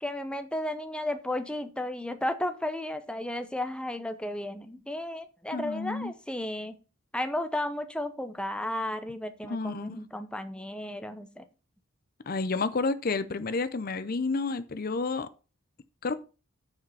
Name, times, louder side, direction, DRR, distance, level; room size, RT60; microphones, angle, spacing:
voice 1, 0.0-6.8 7.1-11.4, left 1 dB, 5° left, 0.7 m, -33 dB
voice 2, 5.5-6.1 9.4-10.0 12.3-15.3 16.0-16.2, left 3 dB, 45° left, 0.6 m, -30 dB
9.5 x 5.0 x 5.4 m
head